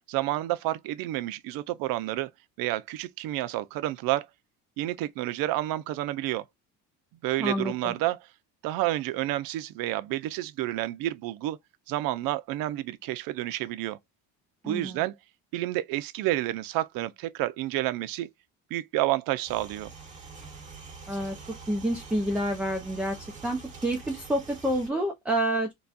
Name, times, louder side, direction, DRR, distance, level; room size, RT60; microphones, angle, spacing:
voice 1, 0.1-2.3 2.6-4.3 4.8-6.4 7.2-8.2 8.6-11.6 11.9-14.0 14.6-15.1 15.5-18.3 18.7-19.9, right 15 dB, 75° right, 0.6 m, -29 dB
voice 2, 7.4-7.9 14.6-15.1 21.1-21.4 21.7-23.2 23.4-25.7, right 1 dB, 5° right, 0.5 m, -28 dB
sound 1, 19.5-24.9, right 4 dB, 20° right, 1.4 m, -45 dB
4.0 x 2.3 x 2.4 m
cardioid pair, 150°, 35 cm